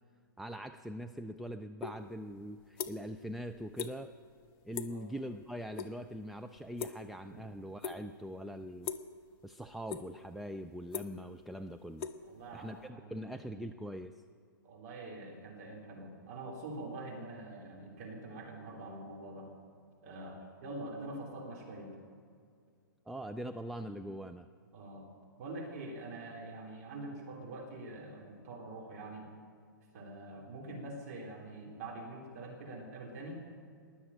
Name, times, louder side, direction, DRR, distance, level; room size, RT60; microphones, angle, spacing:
voice 1, 0.4-4.2 4.6-8.9 9.4-12.1 12.5-14.1 23.1-24.5, equal, ahead, 7 dB, 0.3 m, -42 dB
sound 1, 1.8-2.0 2.3-3.2 3.5-3.9 4.2-4.5 4.7-5.0 5.4-5.9 6.2-7.3 7.8-8.2 8.8-9.2 9.6-10.3 10.6-12.8, left 7 dB, 40° left, 1.0 m, -41 dB
voice 2, 12.2-13.6 14.6-19.5 20.0-22.0 24.7-25.1 25.4-29.3 29.9-33.4, right 2 dB, 45° right, -1 dB, 3.5 m, -45 dB
20.0 x 7.2 x 8.9 m, 2.2 s
hypercardioid pair, 120°, 12 cm